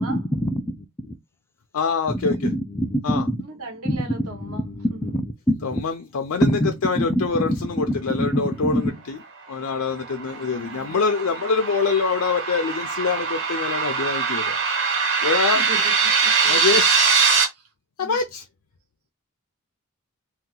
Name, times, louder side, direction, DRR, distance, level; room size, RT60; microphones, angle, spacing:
voice 1, 0.0-1.1 2.1-3.4 3.8-5.8 6.4-9.0, equal, 10° left, 0.3 m, -25 dB
voice 2, 1.7-2.3 3.0-3.3 5.6-9.2 9.5-14.6 15.2-15.6 16.4-16.8 18.0-18.4, left 4 dB, 70° left, 0.5 m, -25 dB
voice 3, 3.4-5.2 10.3-11.0 15.5-16.5 17.5-17.7 18.0-18.2, right 2 dB, 75° right, 1.3 m, -39 dB
sound 1, 9.7-17.4, right 5 dB, 55° right, 1.3 m, -22 dB
2.8 x 2.3 x 3.7 m
head